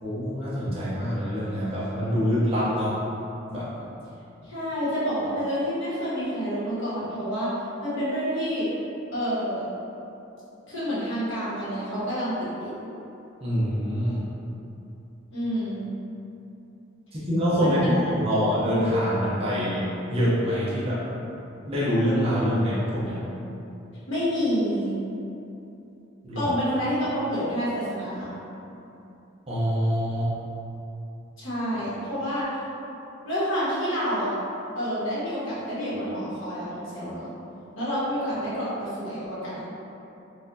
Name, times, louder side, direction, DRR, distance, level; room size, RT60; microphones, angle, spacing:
voice 1, 0.0-3.0 3.5-3.7 13.4-14.2 17.1-21.0 21.7-23.2 26.2-26.5 29.5-30.3, equal, 30° right, -10 dB, 0.7 m, -25 dB
voice 2, 4.4-7.6 7.8-8.7 9.1-9.6 10.7-12.8 15.3-15.9 17.6-17.9 18.3-18.4 24.1-24.9 26.3-28.3 31.4-32.6 33.2-34.3 34.7-37.3 37.7-39.7, equal, 85° left, -11 dB, 1.4 m, -28 dB
4.1 x 2.5 x 2.7 m, 2.9 s
head